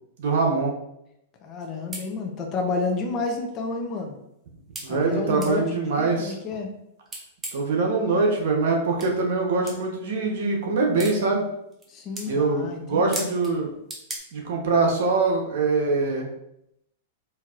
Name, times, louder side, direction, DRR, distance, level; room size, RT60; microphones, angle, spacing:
voice 1, 0.2-0.7 4.8-6.3 7.5-11.4 12.3-13.7 14.3-16.3, right 3 dB, 70° right, 0 dB, 1.0 m, -23 dB
voice 2, 1.4-4.2 4.9-6.7 11.9-13.3, left 4 dB, 30° left, 3 dB, 0.7 m, -30 dB
sound 1, 1.6-1.7 1.9-2.1 2.9-3.0 3.5-3.6 4.8-4.9 5.4-5.5 7.1-7.7 9.0-9.1 9.7-9.8 11.0-11.2 11.7-11.9 12.2-12.3 13.1-13.5 13.9-14.2, right 2 dB, 15° right, 0.7 m, -35 dB
4.4 x 2.8 x 2.5 m, 0.82 s
hypercardioid pair, 135°, 0 cm